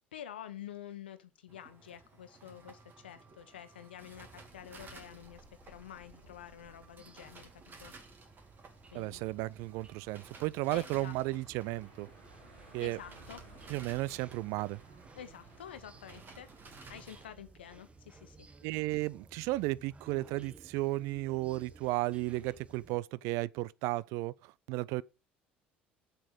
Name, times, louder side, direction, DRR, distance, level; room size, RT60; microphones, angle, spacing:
voice 1, 0.1-7.9 8.9-9.2 10.7-11.4 12.6-13.4 15.1-16.5 16.9-18.5, left 10 dB, 80° left, 1.1 m, -49 dB
sound 1, 1.5-17.3, right 3 dB, 40° right, 2.6 m, -55 dB
sound 2, 4.1-23.0, right 4 dB, 20° right, 1.0 m, -58 dB
sound 3, 6.4-18.6, right 2 dB, 85° right, 2.8 m, -61 dB
voice 2, 8.9-12.1 12.7-13.0 13.7-14.8 18.6-25.0, right 19 dB, 60° right, 0.4 m, -34 dB
7.5 x 6.7 x 6.6 m
figure-of-eight pair, 60°, 6 cm